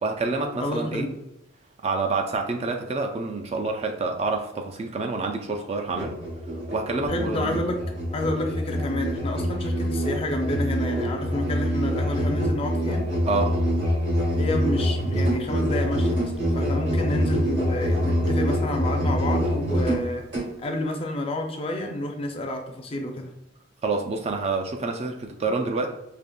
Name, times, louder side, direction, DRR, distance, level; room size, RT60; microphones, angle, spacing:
voice 1, 0.0-1.1 1.8-6.2 6.7-7.7 13.3-13.6 23.8-25.9, right 3 dB, 30° right, 3 dB, 0.3 m, -27 dB
voice 2, 0.6-1.2 7.1-7.8 8.1-13.1 14.4-20.2 20.6-23.3, left 1 dB, 30° left, 3 dB, 0.4 m, -29 dB
Musical instrument, 5.9-20.5, equal, 55° right, 1.3 m, -25 dB
5.0 x 2.9 x 2.3 m, 0.87 s
head